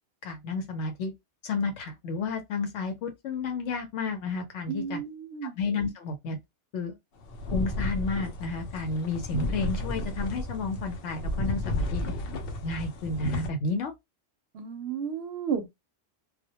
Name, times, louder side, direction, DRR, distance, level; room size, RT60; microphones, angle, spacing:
voice 1, 0.2-1.1 1.4-5.0 5.4-6.4 6.7-7.0 7.5-12.0 12.6-13.9, left 3 dB, 85° left, 0.9 m, -31 dB
voice 2, 4.7-5.6 14.5-15.7, right 7 dB, 70° right, 0.8 m, -33 dB
sound 1, 7.2-13.5, left 1 dB, 65° left, 0.7 m, -32 dB
2.2 x 2.1 x 2.7 m
omnidirectional pair, 1.2 m